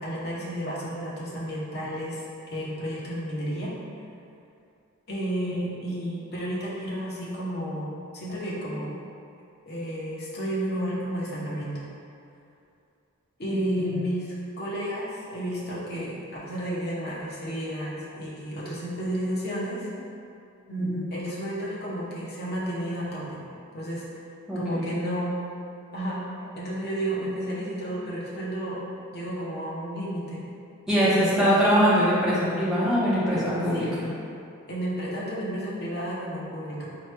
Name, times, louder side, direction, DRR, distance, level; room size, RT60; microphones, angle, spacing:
voice 1, 0.0-2.2 2.5-3.7 5.1-9.0 9.7-11.8 13.4-19.9 20.7-23.4 23.7-24.0 24.5-25.3 25.9-26.2 26.5-28.8 29.1-30.4 31.0-31.7 33.7-33.9 34.7-36.9, equal, 45° left, -6 dB, 0.7 m, -32 dB
voice 2, 13.5-14.0 20.8-21.0 24.5-24.9 30.9-33.9, equal, ahead, -11 dB, 0.8 m, -23 dB
4.4 x 2.9 x 2.2 m, 2.5 s
head